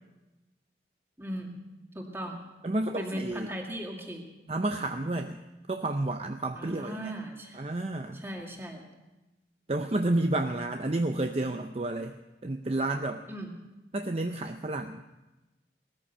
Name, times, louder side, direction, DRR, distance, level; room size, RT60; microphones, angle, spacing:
voice 1, 1.2-1.6 1.9-2.4 3.0-4.2 6.6-7.6 8.1-8.8 13.3-13.5, right 1 dB, 15° right, 1 dB, 2.2 m, -38 dB
voice 2, 2.6-3.5 4.5-5.4 5.7-7.1 7.5-8.2 9.7-12.2 12.4-13.2 13.9-15.0, right 2 dB, 35° right, 6 dB, 0.6 m, -30 dB
19.0 x 13.5 x 5.6 m, 1.1 s
head